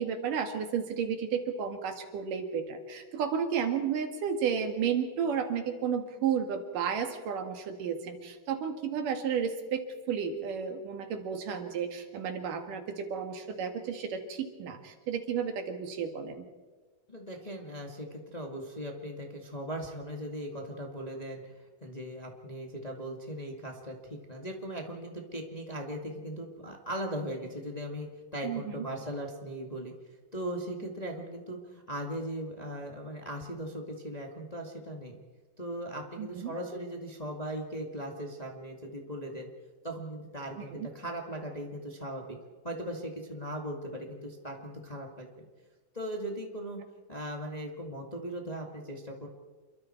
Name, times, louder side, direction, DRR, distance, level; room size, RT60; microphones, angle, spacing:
voice 1, 0.0-16.4 28.4-28.8 36.2-36.5 40.6-40.9, right 7 dB, 80° right, 5 dB, 3.5 m, -32 dB
voice 2, 17.1-29.9 30.3-35.2 35.6-39.5 39.8-42.4 42.6-45.4 45.9-46.8 47.1-49.3, equal, 15° left, 1 dB, 1.7 m, -39 dB
28.0 x 23.5 x 4.5 m, 1.3 s
omnidirectional pair, 3.7 m